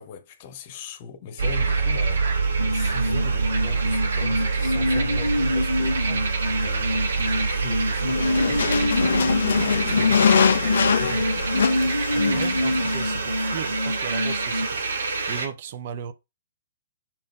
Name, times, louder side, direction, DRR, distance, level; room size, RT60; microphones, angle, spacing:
voice 1, 0.0-2.4 2.6-6.2 6.4-11.3, left 6 dB, 35° left, 1.0 m, -39 dB
sound 1, 1.4-15.5, right 4 dB, 60° right, 1.2 m, -26 dB
sound 2, 2.6-14.7, left 1 dB, 90° right, 0.6 m, -27 dB
sound 3, 8.1-13.2, left 7 dB, 55° left, 0.4 m, -23 dB
voice 2, 10.9-11.3 12.1-14.9 15.3-16.1, right 8 dB, 40° right, 0.6 m, -36 dB
5.9 x 4.0 x 4.1 m
figure-of-eight pair, 120°, 0 cm